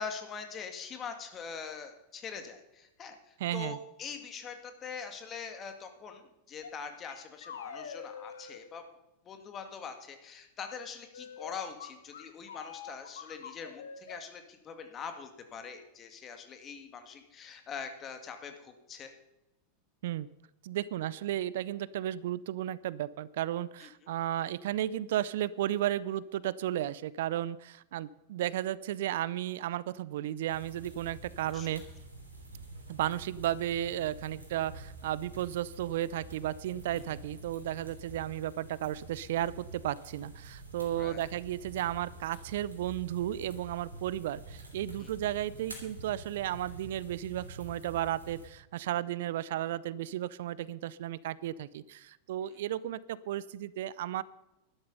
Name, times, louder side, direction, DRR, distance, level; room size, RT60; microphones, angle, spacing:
voice 1, 0.0-8.8 9.3-19.1 23.8-23.9 31.5-31.7 36.9-37.0 41.0-41.2 45.0-45.1 52.5-52.6, left 6 dB, 30° left, 6 dB, 2.2 m, -43 dB
voice 2, 3.4-3.8 20.0-20.3 20.6-31.8 32.9-54.2, right 12 dB, 65° right, 20 dB, 0.5 m, -34 dB
sound 1, 6.6-6.7 7.0-8.6 11.1-14.2, left 6 dB, 75° left, 1.3 m, -45 dB
sound 2, 30.5-48.5, right 2 dB, 85° right, 3.1 m, -48 dB
12.0 x 11.5 x 5.5 m, 0.95 s
figure-of-eight pair, 90°, 0 cm